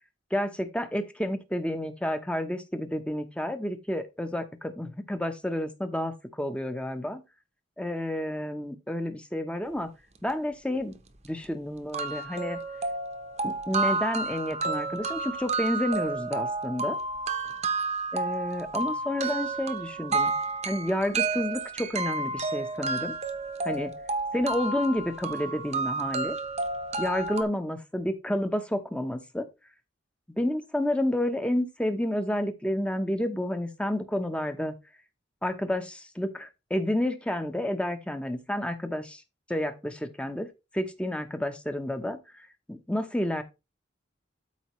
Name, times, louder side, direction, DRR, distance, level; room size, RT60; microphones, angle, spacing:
voice 1, 0.3-7.2 7.8-9.9 10.2-10.9 11.2-12.6 13.4-17.0 18.1-20.3 20.6-23.1 23.6-23.9 24.3-26.3 27.0-29.5 30.4-34.7 35.4-39.2 39.5-40.5 40.7-43.4, left 1 dB, 5° left, 0.8 m, -30 dB
sound 1, 11.0-11.1 11.4-11.5 11.9-27.4, right 3 dB, 35° right, 0.9 m, -31 dB
12.5 x 4.6 x 3.1 m
head